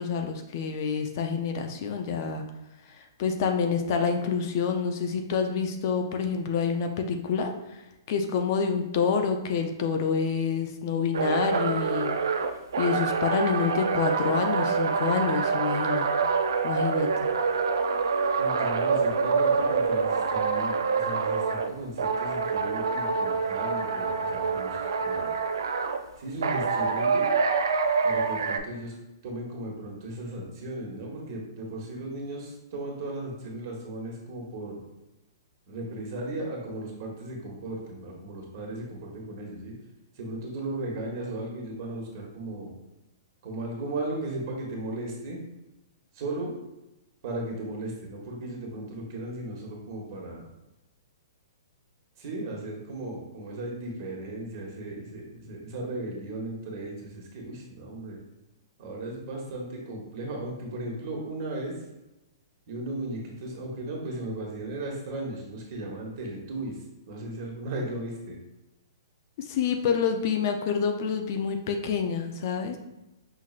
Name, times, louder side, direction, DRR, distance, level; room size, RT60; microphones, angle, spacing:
voice 1, 0.0-2.4 3.2-7.5 8.1-12.1 12.8-16.1 16.6-17.1 69.5-72.8, left 6 dB, 50° left, 5 dB, 0.5 m, -27 dB
sound 1, 11.1-21.7 22.0-26.0 26.4-28.6, right 5 dB, 80° right, 0.4 m, -26 dB
voice 2, 18.4-25.4 26.2-27.3 28.0-28.9 29.2-34.8 35.7-39.7 40.2-42.7 43.4-45.4 46.1-46.5 47.2-50.4 52.2-58.2 58.8-61.8 62.7-66.8 67.1-68.4, right 2 dB, 50° right, -1 dB, 1.3 m, -36 dB
5.7 x 3.0 x 2.5 m, 0.97 s
hypercardioid pair, 140°, 2 cm